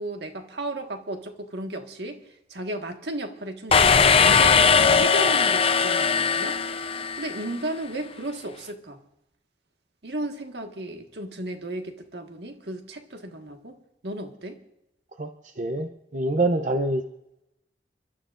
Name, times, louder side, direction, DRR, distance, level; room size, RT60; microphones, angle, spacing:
voice 1, 0.0-2.2 2.5-6.6 7.2-9.0 10.0-13.8 14.0-14.6, right 1 dB, 70° right, 4 dB, 1.6 m, -34 dB
sound 1, 3.7-7.5, left 5 dB, 35° left, 0.5 m, -19 dB
voice 2, 15.6-17.0, right 2 dB, 45° right, 6 dB, 0.7 m, -25 dB
29.5 x 12.5 x 2.5 m, 0.88 s
head